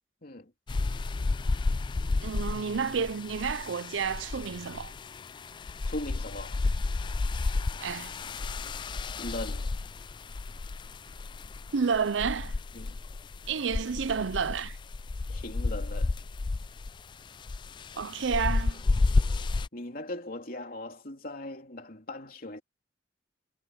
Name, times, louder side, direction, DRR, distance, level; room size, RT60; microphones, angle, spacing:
voice 1, 0.2-0.5 5.8-6.6 9.2-9.7 12.7-13.0 15.3-16.2 19.7-22.6, left 1 dB, 50° left, 3.3 m, -39 dB
sound 1, 0.7-19.7, left 3 dB, 25° left, 0.3 m, -32 dB
voice 2, 2.2-4.9 7.8-8.2 11.7-12.5 13.5-14.8 18.0-18.8, right 6 dB, 85° right, 0.6 m, -30 dB
head